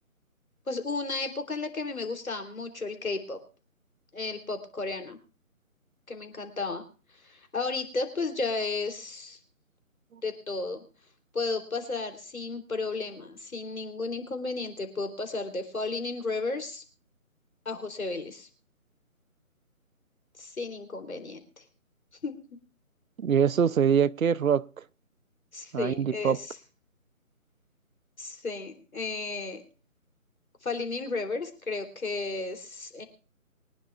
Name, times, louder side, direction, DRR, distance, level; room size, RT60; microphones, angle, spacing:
voice 1, 0.7-3.4 4.1-5.2 6.1-6.8 7.1-9.4 10.2-10.8 11.3-16.8 17.6-18.5 20.4-21.6 22.2-22.3 25.5-26.6 28.2-29.6 30.6-33.0, left 3 dB, 75° left, 3.4 m, -33 dB
voice 2, 23.2-24.6 25.7-26.4, right 7 dB, 70° right, 0.6 m, -23 dB
24.0 x 10.5 x 2.4 m
figure-of-eight pair, 160°, 42 cm